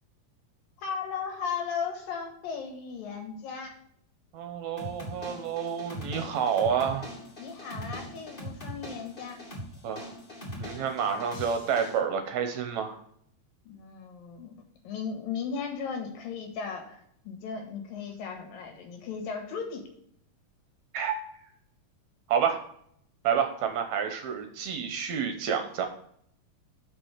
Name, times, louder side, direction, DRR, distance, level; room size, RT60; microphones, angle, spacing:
voice 1, 0.8-3.7 7.4-9.4 13.7-14.6 14.9-19.8, left 6 dB, 85° left, 2 dB, 3.5 m, -36 dB
voice 2, 4.3-7.1 9.8-10.1 10.6-13.0 20.9-21.2 22.3-22.6 23.2-25.9, right 7 dB, 70° right, 6 dB, 1.9 m, -29 dB
sound 1, 4.8-12.0, equal, 15° left, 2.1 m, -41 dB
6.2 x 5.8 x 6.3 m, 0.67 s
omnidirectional pair, 3.9 m